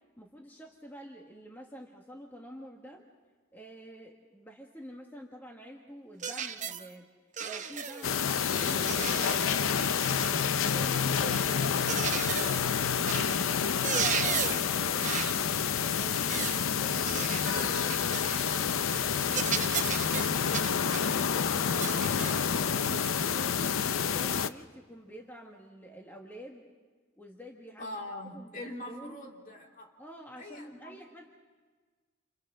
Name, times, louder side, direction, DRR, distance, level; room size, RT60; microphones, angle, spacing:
voice 1, 0.2-3.0 3.5-7.1 7.4-9.8 10.2-12.9 13.2-15.5 15.9-18.2 18.5-20.8 21.2-23.6 23.9-26.6 27.2-28.0 28.3-29.2 30.0-31.3, equal, 10° left, 0 dB, 1.6 m, -48 dB
sound 1, 6.2-6.9 7.4-8.1 8.5-10.4 11.2-12.7 13.1-13.4 13.7-14.7 15.0-15.4 16.0-16.7 17.1-18.7 18.9-19.1 19.3-21.1 21.8-22.5 23.0-23.2 24.3-24.4, right 7 dB, 40° right, 0.9 m, -35 dB
sound 2, 8.0-24.5, left 7 dB, 90° left, 0.6 m, -28 dB
voice 2, 27.8-29.9 30.4-31.0, left 1 dB, 45° left, 0 dB, 3.0 m, -42 dB
29.5 x 28.5 x 3.8 m, 1.4 s
head